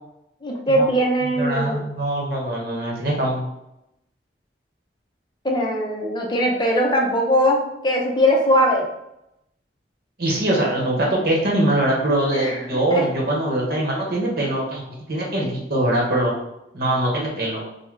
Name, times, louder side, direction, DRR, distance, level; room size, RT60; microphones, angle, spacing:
voice 1, 0.4-1.8 5.4-8.9 12.3-13.1, equal, 25° left, 0 dB, 0.5 m, -20 dB
voice 2, 1.2-3.4 10.2-14.8 15.1-16.3 16.7-17.6, right 1 dB, 55° right, -2 dB, 0.9 m, -22 dB
3.6 x 2.1 x 3.1 m, 0.85 s
head